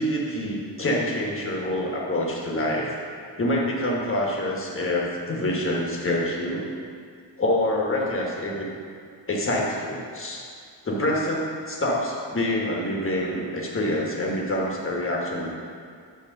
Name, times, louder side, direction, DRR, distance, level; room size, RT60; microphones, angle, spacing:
voice 1, 0.0-2.9 3.4-6.7 7.4-8.7 9.3-10.5 10.8-15.5, left 1 dB, 30° left, -3 dB, 1.3 m, -26 dB
9.2 x 3.3 x 6.5 m, 2.2 s
wide cardioid pair, 165°, 44 cm